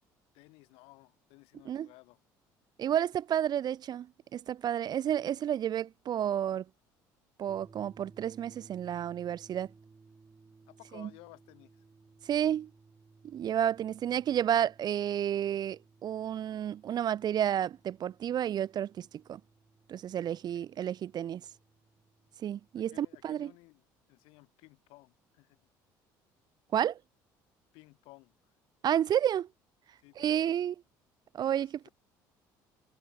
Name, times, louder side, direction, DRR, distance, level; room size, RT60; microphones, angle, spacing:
voice 1, 0.3-2.2 10.7-11.8 20.5-20.7 22.8-23.8 24.1-25.6 27.7-28.3 30.0-30.5 31.5-31.7, left 24 dB, 75° left, 6.2 m, -56 dB
voice 2, 2.8-4.1 4.3-6.6 7.4-9.7 10.9-11.1 12.3-12.7 13.2-19.4 19.9-21.4 22.4-23.5 26.7-27.0 28.8-29.5 30.2-30.7 31.3-31.9, right 10 dB, 50° right, 0.6 m, -31 dB
sound 1, 7.5-23.3, right 4 dB, 25° right, 7.5 m, -60 dB
supercardioid pair, 75°, 9 cm